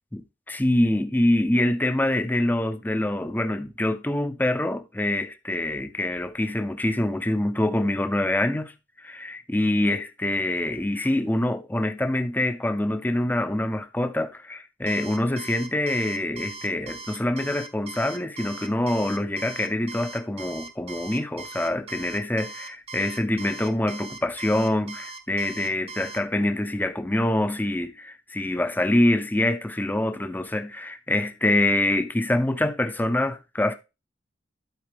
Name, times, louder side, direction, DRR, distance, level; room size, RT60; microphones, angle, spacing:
voice 1, 0.1-8.7 9.0-33.7, left 1 dB, 10° left, 0.6 m, -25 dB
Alarm, 14.9-26.2, right 3 dB, 30° right, 0.8 m, -40 dB
12.0 x 4.4 x 3.4 m
head